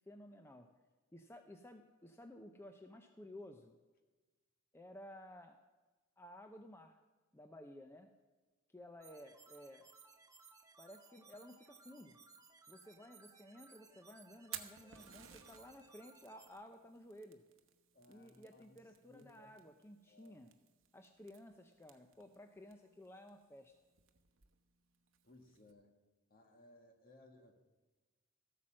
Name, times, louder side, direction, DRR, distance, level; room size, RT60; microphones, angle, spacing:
voice 1, 0.1-0.7 1.1-3.7 4.7-5.6 6.2-7.0 7.3-8.1 8.7-9.9 10.8-12.2 12.7-17.4 18.1-20.5 20.9-23.7, left 1 dB, 10° left, 5 dB, 0.6 m, -55 dB
sound 1, 9.0-16.5, right 4 dB, 20° right, 1.0 m, -62 dB
Fire, 14.3-25.7, right 10 dB, 70° right, 1.0 m, -57 dB
voice 2, 17.9-18.8 19.1-19.5 20.1-20.4 25.2-25.9 26.3-27.5, left 1 dB, 45° left, 3 dB, 1.7 m, -62 dB
14.0 x 8.6 x 6.3 m, 1.3 s
head